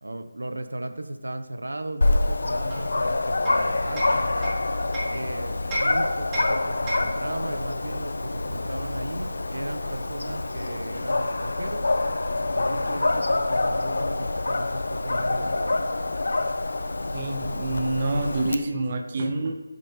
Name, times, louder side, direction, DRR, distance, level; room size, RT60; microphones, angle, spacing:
voice 1, 0.0-4.4 5.1-11.9 12.5-15.8, right 1 dB, 85° right, 7 dB, 1.4 m, -36 dB
Dog, 2.0-18.5, left 2 dB, 70° left, 1.2 m, -26 dB
Hammer, 2.7-5.2 5.7-7.3, equal, 15° right, 3.5 m, -33 dB
voice 2, 17.1-19.6, right 2 dB, 35° right, 3 dB, 1.5 m, -27 dB
20.5 x 8.5 x 3.4 m, 1.1 s
figure-of-eight pair, 165°, 0 cm